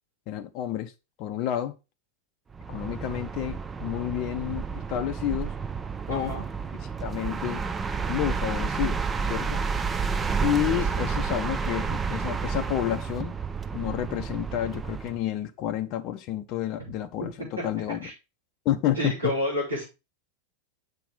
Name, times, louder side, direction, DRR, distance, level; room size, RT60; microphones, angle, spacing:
voice 1, 0.3-0.9 1.2-1.8 2.7-5.5 6.1-6.4 7.0-7.6 8.1-9.6 10.4-13.3 13.7-18.1 18.6-19.1, left 12 dB, 40° left, 0.6 m, -30 dB
sound 1, 2.5-15.2, right 5 dB, 15° right, 0.6 m, -30 dB
voice 2, 6.1-6.4 18.0-18.1 18.9-19.8, left 1 dB, 80° right, 4.9 m, -29 dB
7.3 x 6.0 x 3.9 m
figure-of-eight pair, 90°, 0 cm